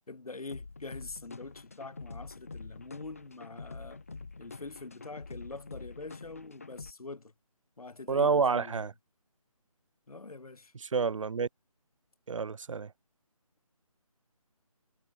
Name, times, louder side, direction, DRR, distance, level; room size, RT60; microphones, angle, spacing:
voice 1, 0.1-4.0 4.4-7.3 7.8-8.9 10.1-10.7, left 3 dB, 75° left, 1.7 m, -44 dB
sound 1, 0.5-6.9, left 4 dB, 25° left, 0.4 m, -46 dB
voice 2, 8.1-8.9 10.9-11.5 12.3-12.9, right 5 dB, 60° right, 0.5 m, -28 dB
figure-of-eight pair, 155°, 19 cm